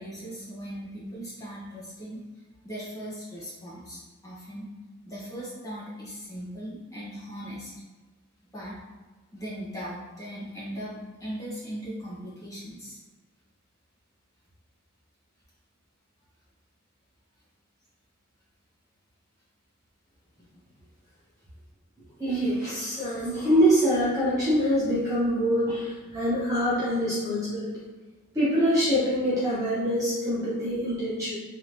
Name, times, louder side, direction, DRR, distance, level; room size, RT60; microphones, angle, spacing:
voice 1, 0.0-2.2 2.6-4.7 5.0-7.7 8.5-8.8 9.3-13.0, equal, 15° left, -8 dB, 1.4 m, -38 dB
voice 2, 22.2-27.7 28.3-31.4, equal, 15° right, -11 dB, 1.0 m, -25 dB
3.8 x 3.4 x 3.0 m, 1.3 s
head